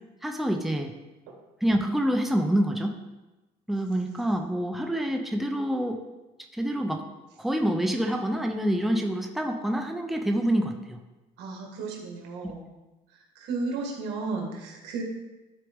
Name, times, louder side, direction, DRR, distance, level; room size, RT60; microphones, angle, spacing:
voice 1, 0.2-0.9 1.6-3.0 3.7-6.0 6.5-7.0 7.4-11.0, equal, ahead, 3 dB, 0.7 m, -26 dB
voice 2, 11.4-12.6 13.4-15.0, right 3 dB, 85° right, 0 dB, 1.9 m, -33 dB
12.0 x 4.5 x 3.6 m, 1.1 s
cardioid pair, 110°, 17 cm